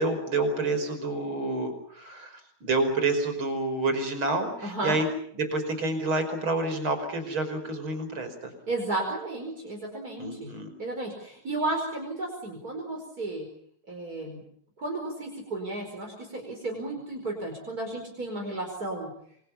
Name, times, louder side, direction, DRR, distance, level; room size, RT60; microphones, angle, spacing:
voice 1, 0.0-5.1 5.4-8.5 10.2-10.7, right 2 dB, 90° right, 8 dB, 6.0 m, -28 dB
voice 2, 4.6-5.0 8.7-10.5 10.8-13.5 13.9-14.4 14.8-19.1, right 2 dB, 45° right, 1 dB, 5.5 m, -33 dB
27.5 x 24.5 x 7.0 m, 0.66 s
omnidirectional pair, 2.2 m